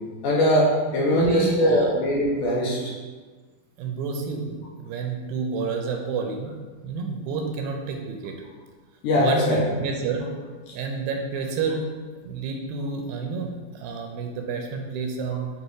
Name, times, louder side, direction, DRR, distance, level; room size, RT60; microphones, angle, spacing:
voice 1, 0.2-2.9 9.0-9.6, equal, 70° left, -5 dB, 2.0 m, -21 dB
voice 2, 1.1-1.9 3.8-6.6 6.8-8.3 9.2-10.3 10.7-11.9 12.2-15.5, right 4 dB, 80° right, 2 dB, 2.3 m, -29 dB
7.2 x 2.9 x 4.6 m, 1.4 s
omnidirectional pair, 4.4 m